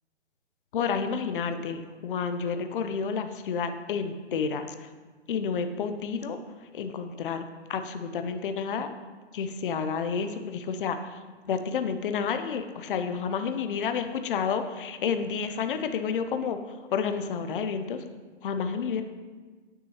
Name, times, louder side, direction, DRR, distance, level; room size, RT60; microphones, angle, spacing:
voice 1, 0.7-4.7 5.3-6.4 6.7-7.4 7.7-8.9 9.3-11.2 11.5-18.0 18.4-19.0, left 6 dB, 50° left, 8 dB, 0.5 m, -30 dB
8.0 x 6.2 x 2.9 m, 1.4 s
hypercardioid pair, 145°, 34 cm